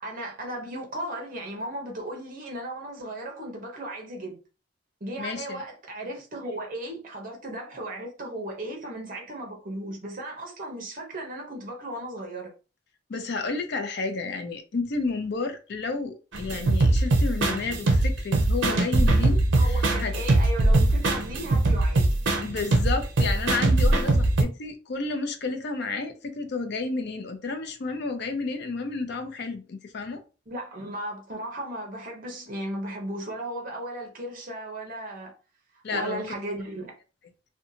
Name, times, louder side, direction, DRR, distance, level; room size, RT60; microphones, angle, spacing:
voice 1, 0.0-4.4 5.0-12.5 19.5-22.1 30.5-35.3 35.9-36.9, right 1 dB, 45° right, 0.8 m, -36 dB
voice 2, 5.2-5.6 13.1-20.1 22.4-30.2 35.8-36.2, left 3 dB, 60° left, 0.5 m, -31 dB
sound 1, 16.3-24.4, right 2 dB, 75° right, 0.5 m, -21 dB
2.6 x 2.3 x 2.7 m
head